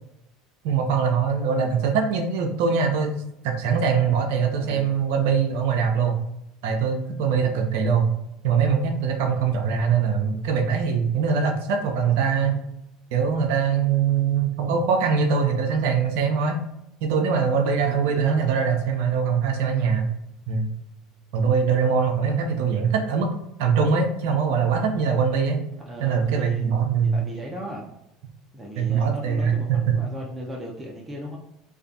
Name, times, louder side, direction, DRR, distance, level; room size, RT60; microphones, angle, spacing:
voice 1, 0.6-6.2 6.6-8.1 8.4-12.6 13.1-16.6 17.0-20.1 20.5-20.7 21.3-23.3 23.6-25.6 26.0-27.2 28.8-30.0, right 6 dB, 70° right, 3 dB, 0.3 m, -22 dB
voice 2, 4.5-5.0 7.3-7.8 17.8-18.5 25.9-27.9 28.5-31.4, equal, 15° right, -3 dB, 0.5 m, -37 dB
2.4 x 2.3 x 2.5 m, 0.84 s
hypercardioid pair, 75°, 0 cm